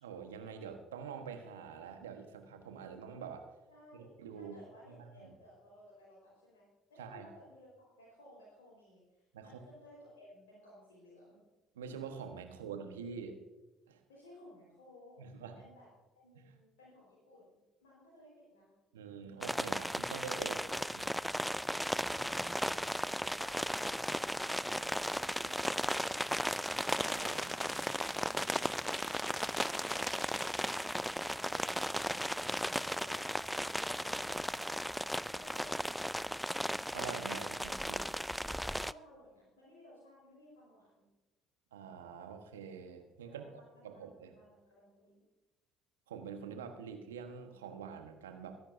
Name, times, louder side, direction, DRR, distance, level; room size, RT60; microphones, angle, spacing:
voice 1, 0.0-3.5 4.2-4.6 4.9-5.3 7.0-7.3 9.3-9.6 11.7-13.4 13.9-14.0 15.2-15.6 16.3-16.4 18.9-20.6 27.0-27.5 34.3-34.4 36.9-38.0 41.7-43.4 43.8-44.3 46.1-48.6, right 6 dB, 85° right, 6 dB, 1.2 m, -46 dB
voice 2, 3.7-11.4 12.8-13.4 14.1-15.9 16.1-18.7 22.1-24.1 24.7-26.7 31.4-34.8 35.2-36.6 37.4-37.7 38.2-41.1 43.2-45.3, left 1 dB, 80° left, -6 dB, 4.6 m, -59 dB
sound 1, 19.4-38.9, equal, ahead, 0.3 m, -36 dB
22.0 x 10.5 x 2.7 m, 1.1 s
hypercardioid pair, 55°, 0 cm